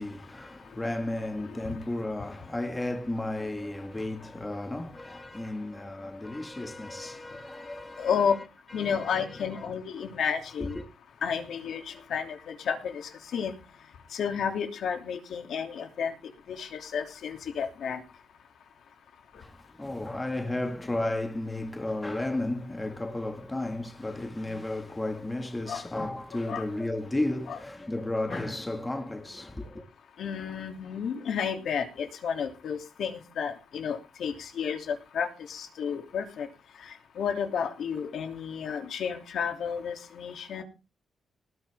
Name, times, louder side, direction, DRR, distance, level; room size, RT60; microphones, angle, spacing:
voice 1, 0.0-8.4 8.7-9.6 10.6-10.9 19.4-29.9, left 2 dB, 15° left, 2.1 m, -33 dB
voice 2, 8.0-8.3 8.7-10.8 11.2-13.5 14.1-16.1 16.5-18.0 25.7-25.8 26.5-26.6 27.5-27.6 28.3-28.4 30.2-36.5 36.8-40.6, left 7 dB, 70° left, 3.0 m, -32 dB
19.0 x 10.0 x 3.7 m
wide cardioid pair, 150°, 0 cm